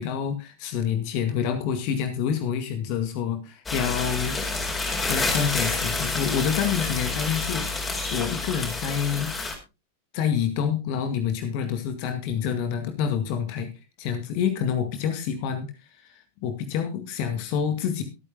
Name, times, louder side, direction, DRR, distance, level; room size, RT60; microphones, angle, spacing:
voice 1, 0.0-4.4 5.1-9.4 10.1-13.7 14.0-15.7 16.0-16.1 16.4-18.0, left 8 dB, 45° left, 9 dB, 1.9 m, -27 dB
sound 1, 3.7-9.5, left 3 dB, 15° left, 4.2 m, -28 dB
23.5 x 8.8 x 2.2 m, 0.28 s
figure-of-eight pair, 90°, 0 cm